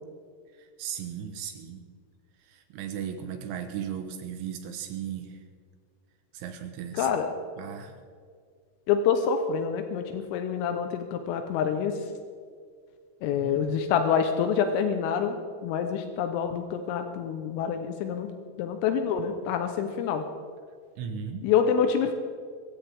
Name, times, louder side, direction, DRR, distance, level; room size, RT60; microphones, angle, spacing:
voice 1, 0.5-1.9 2.4-5.4 6.3-7.1 7.6-8.0 13.4-13.6 21.0-21.5, right 8 dB, 75° right, 6 dB, 3.2 m, -36 dB
voice 2, 7.0-7.3 8.9-12.1 13.2-15.4 15.6-18.3 18.6-20.3 21.4-22.1, left 7 dB, 85° left, 6 dB, 3.5 m, -26 dB
23.5 x 15.0 x 3.6 m, 2.1 s
omnidirectional pair, 5.9 m